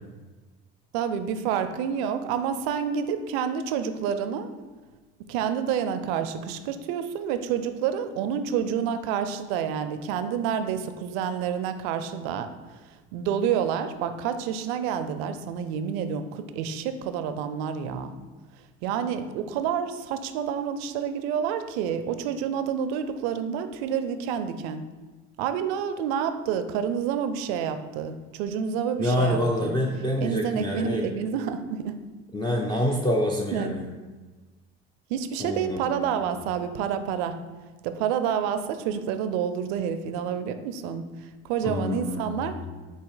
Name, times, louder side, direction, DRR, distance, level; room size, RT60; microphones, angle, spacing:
voice 1, 0.9-4.5 5.3-12.5 13.1-18.1 18.8-24.8 25.4-29.8 30.2-32.0 33.5-33.8 35.1-37.4 37.8-41.0 41.5-42.6, right 8 dB, 90° right, 10 dB, 0.5 m, -28 dB
voice 2, 29.0-31.1 32.3-33.8 35.4-36.1 41.6-42.6, left 1 dB, 15° left, -1 dB, 0.5 m, -27 dB
4.0 x 2.8 x 4.7 m, 1.3 s
supercardioid pair, 90°, 30 cm